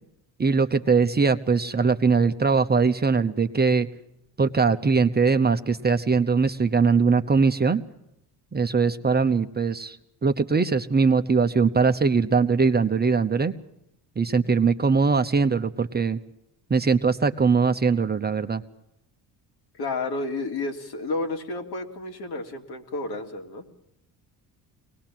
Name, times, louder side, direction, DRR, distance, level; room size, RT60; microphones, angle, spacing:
voice 1, 0.4-3.9 4.4-7.8 8.5-10.0 10.2-13.5 14.2-16.2 16.7-18.6, right 4 dB, 25° right, 8 dB, 1.0 m, -21 dB
voice 2, 19.8-23.6, left 2 dB, 65° left, 3 dB, 3.1 m, -31 dB
23.0 x 19.5 x 7.6 m, 0.82 s
supercardioid pair, 85°, 43 cm